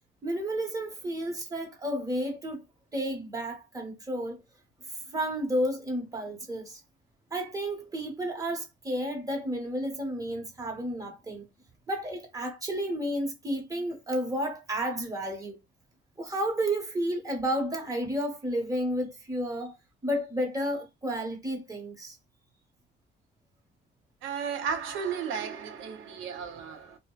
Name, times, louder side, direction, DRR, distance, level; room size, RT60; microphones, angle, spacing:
voice 1, 0.2-2.6 2.9-4.4 5.1-6.8 7.3-11.4 11.9-15.6 16.2-19.7 20.0-22.2, equal, 15° right, 0.9 m, -31 dB
voice 2, 24.2-27.0, right 7 dB, 85° right, 0.5 m, -34 dB
2.6 x 2.1 x 2.2 m
cardioid pair, 90°, 20 cm